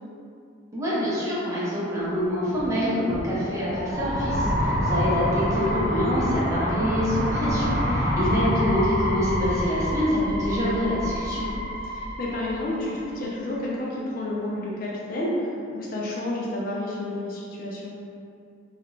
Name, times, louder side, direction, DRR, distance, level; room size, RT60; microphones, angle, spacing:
voice 1, 0.7-11.5, equal, 15° right, -9 dB, 0.6 m, -26 dB
sound 1, 2.3-13.3, equal, 70° right, 0.8 m, -27 dB
voice 2, 11.8-18.0, left 1 dB, 50° left, -4 dB, 0.4 m, -30 dB
2.4 x 2.1 x 3.0 m, 2.4 s
head